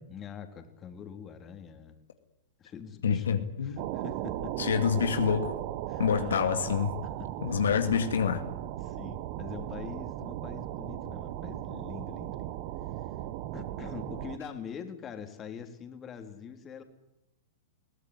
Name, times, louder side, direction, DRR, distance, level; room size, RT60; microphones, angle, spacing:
voice 1, 0.1-2.0 2.6-4.7 5.9-6.6 7.0-7.6 8.8-12.6 13.5-16.8, left 7 dB, 25° left, 6 dB, 3.6 m, -44 dB
voice 2, 3.0-3.8 4.6-5.6 6.0-6.9 7.4-8.4, left 7 dB, 75° left, 7 dB, 2.1 m, -27 dB
sound 1, 3.8-14.4, right 13 dB, 50° right, 1.3 m, -37 dB
22.5 x 17.5 x 9.8 m, 0.86 s
hypercardioid pair, 115°, 0 cm